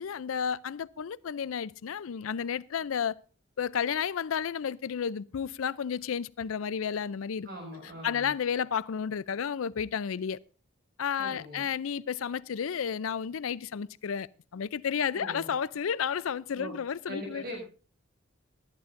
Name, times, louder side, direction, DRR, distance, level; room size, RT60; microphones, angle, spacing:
voice 1, 0.0-3.2 3.6-7.5 8.0-10.4 11.0-17.4, left 7 dB, 85° left, 0.5 m, -32 dB
voice 2, 7.4-8.3 11.2-11.7 15.1-15.5 16.6-16.8 17.1-17.6, equal, 45° right, 6.6 m, -41 dB
19.0 x 11.5 x 2.6 m
head